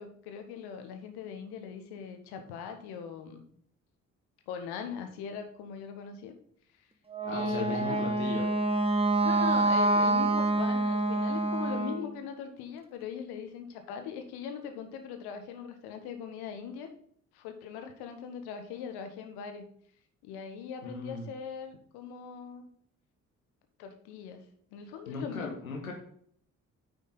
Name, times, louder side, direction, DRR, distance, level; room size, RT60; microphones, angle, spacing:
voice 1, 0.0-3.4 4.5-6.3 6.8-6.9 7.3-8.0 9.2-16.9 17.3-19.6 20.2-22.7 23.8-24.4 24.7-25.5, left 7 dB, 70° left, 7 dB, 1.4 m, -40 dB
Wind instrument woodwind instrument, 7.1-12.1, right 2 dB, 15° right, 1.5 m, -27 dB
voice 2, 7.2-8.5 20.8-21.3 25.1-25.9, left 3 dB, 90° left, 1 dB, 1.5 m, -38 dB
9.4 x 5.3 x 4.0 m, 0.62 s
figure-of-eight pair, 40°, 41 cm